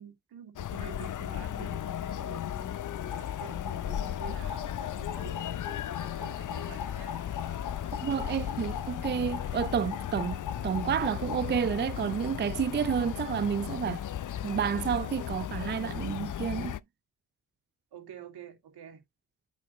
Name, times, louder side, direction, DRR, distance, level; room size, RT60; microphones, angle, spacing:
voice 1, 0.0-2.7 3.1-7.2 17.9-19.0, right 8 dB, 80° right, 2.7 m, -48 dB
sound 1, 0.6-16.8, left 10 dB, 50° left, 0.6 m, -36 dB
sound 2, 3.0-11.6, left 7 dB, 85° left, 2.2 m, -42 dB
voice 2, 8.0-14.1 14.4-16.8, right 8 dB, 30° right, 0.5 m, -30 dB
8.6 x 5.3 x 3.1 m
supercardioid pair, 50°, 39 cm